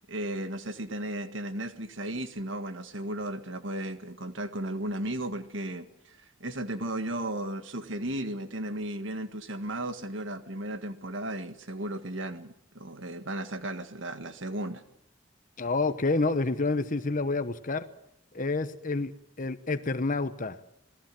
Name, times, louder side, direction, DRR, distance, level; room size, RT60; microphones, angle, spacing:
voice 1, 0.1-14.8, right 1 dB, 65° right, 9 dB, 1.8 m, -35 dB
voice 2, 15.6-17.8 18.3-19.1 19.4-20.6, left 3 dB, 40° left, 11 dB, 1.0 m, -28 dB
27.0 x 19.5 x 7.7 m, 0.76 s
head